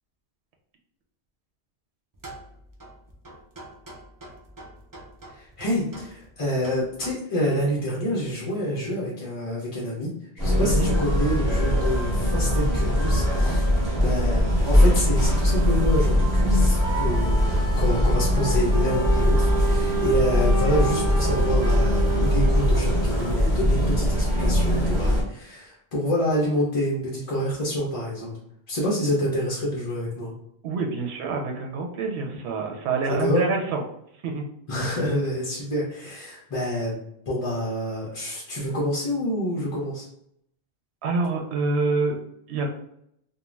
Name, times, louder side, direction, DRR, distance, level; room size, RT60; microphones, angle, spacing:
sound 1, 2.1-7.1, right 2 dB, 35° right, 0.3 m, -44 dB
voice 1, 5.3-13.7 14.0-28.3 28.7-30.3 33.1-33.4 34.7-40.1, equal, 40° left, -5 dB, 0.5 m, -27 dB
sound 2, 10.4-25.2, left 1 dB, 5° left, 1.3 m, -21 dB
voice 2, 10.6-10.9 20.4-20.5 30.6-33.8 34.2-34.5 41.0-42.2 42.5-42.7, right 3 dB, 80° right, 2 dB, 0.8 m, -26 dB
Wind instrument woodwind instrument, 18.7-23.3, right 8 dB, 15° right, 1.2 m, -30 dB
2.4 x 2.1 x 3.1 m, 0.73 s
omnidirectional pair, 1.1 m